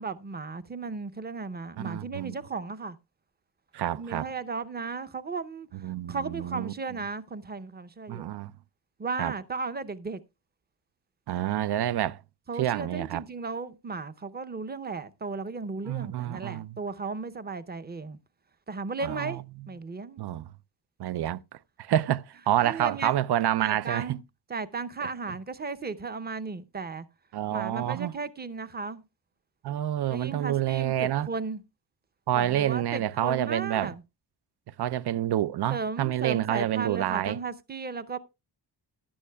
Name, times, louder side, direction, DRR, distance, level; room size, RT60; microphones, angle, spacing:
voice 1, 0.0-3.0 3.9-8.3 9.0-10.2 12.5-18.2 18.7-20.2 22.6-23.2 23.6-24.2 24.5-27.0 27.5-29.0 30.1-31.6 32.3-34.0 35.7-38.2, right 4 dB, 25° right, 0.7 m, -35 dB
voice 2, 1.8-2.4 3.7-4.3 5.7-6.7 8.1-8.5 9.2-9.3 11.3-12.2 12.6-13.2 15.9-16.8 19.0-19.4 20.2-20.5 21.0-21.4 21.8-24.2 27.3-28.1 29.6-31.3 32.3-33.9 34.8-37.4, right 12 dB, 65° right, 0.6 m, -28 dB
15.0 x 11.0 x 2.3 m
wide cardioid pair, 140°, 43 cm